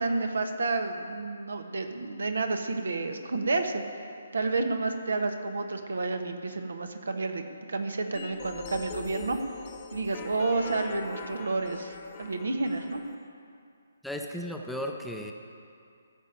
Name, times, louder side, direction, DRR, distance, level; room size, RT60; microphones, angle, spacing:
voice 1, 0.0-3.8 4.3-9.4 9.9-13.0, right 3 dB, 70° right, 6 dB, 1.3 m, -30 dB
sound 1, 8.1-13.1, left 6 dB, 25° left, 1.3 m, -42 dB
voice 2, 14.0-15.3, equal, ahead, 1 dB, 0.8 m, -35 dB
15.0 x 6.7 x 9.0 m, 2.4 s
figure-of-eight pair, 140°, 0 cm